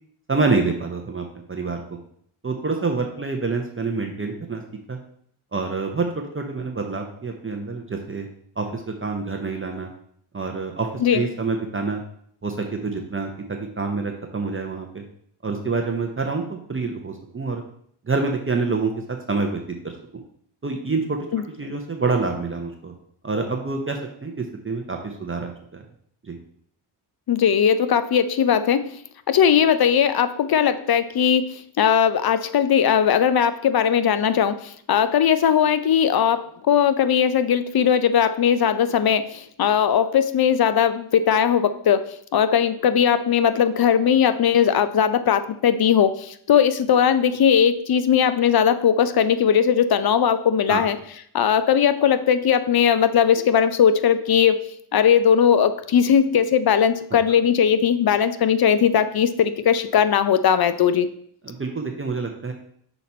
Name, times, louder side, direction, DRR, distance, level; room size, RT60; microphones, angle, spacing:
voice 1, 0.3-1.8 2.4-4.6 4.9-5.0 5.5-8.3 8.6-9.9 10.3-12.0 12.4-15.0 15.4-17.6 18.0-19.6 20.6-21.3 21.6-22.9 23.2-25.8 26.2-26.4 50.7-50.8 61.4-62.5, right 4 dB, 25° right, 3 dB, 0.7 m, -27 dB
voice 2, 27.3-28.9 29.3-34.6 34.9-51.0 51.3-54.6 54.9-61.1, left 8 dB, 50° left, 12 dB, 0.5 m, -19 dB
5.9 x 4.1 x 4.2 m, 0.66 s
wide cardioid pair, 100°, 49 cm